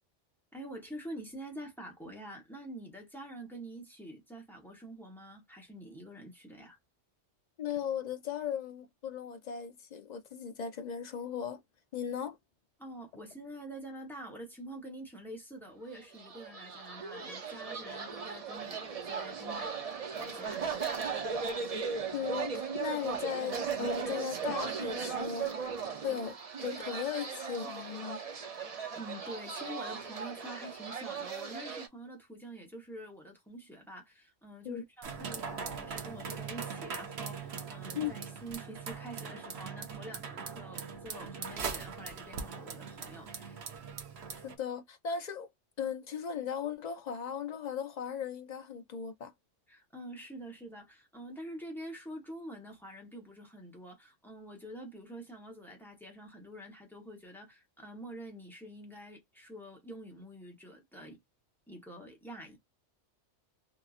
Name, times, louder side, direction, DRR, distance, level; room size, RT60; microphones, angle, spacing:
voice 1, 0.5-6.8 12.8-20.6 28.9-43.6 49.7-61.2 61.7-62.6, right 1 dB, ahead, 1.0 m, -46 dB
voice 2, 7.6-11.6 11.9-12.4 22.1-26.3 26.6-28.2 34.6-34.8 37.9-38.1 44.4-45.5 45.8-49.3, left 7 dB, 50° left, 0.5 m, -37 dB
sound 1, 16.1-31.9, right 5 dB, 45° right, 0.5 m, -37 dB
sound 2, 35.0-44.6, right 6 dB, 65° right, 1.0 m, -41 dB
2.8 x 2.6 x 2.4 m
omnidirectional pair, 1.2 m